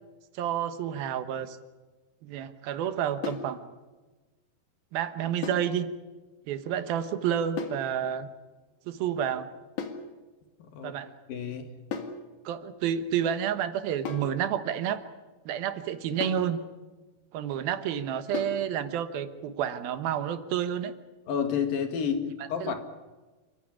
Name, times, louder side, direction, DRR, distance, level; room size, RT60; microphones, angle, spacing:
voice 1, 0.3-1.6 2.2-3.6 4.9-5.9 6.5-8.3 8.9-9.5 10.8-11.1 12.5-15.0 15.5-16.6 17.3-20.9 22.6-22.7, right 9 dB, 85° right, 10 dB, 3.1 m, -30 dB
sound 1, 3.2-3.5 5.4-5.7 7.6-7.9 9.8-10.1 11.9-12.2 14.1-14.4 16.2-16.5 18.3-18.6, left 5 dB, 55° left, 3.1 m, -35 dB
voice 2, 10.6-11.0 11.3-11.7 21.3-22.7, left 7 dB, 75° left, 6 dB, 3.9 m, -30 dB
28.0 x 15.5 x 10.0 m, 1.2 s
omnidirectional pair, 4.1 m